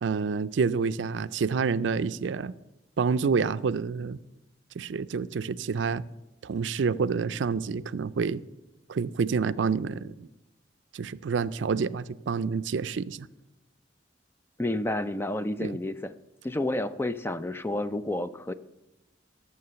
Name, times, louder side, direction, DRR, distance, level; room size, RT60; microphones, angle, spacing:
voice 1, 0.0-2.5 3.0-4.2 4.8-6.0 6.4-8.4 8.9-10.3 10.9-13.3 15.6-15.7, right 5 dB, 80° right, 15 dB, 0.4 m, -28 dB
voice 2, 14.6-16.1 16.4-18.5, left 1 dB, 10° left, 12 dB, 0.4 m, -30 dB
12.5 x 7.1 x 6.8 m, 0.98 s
head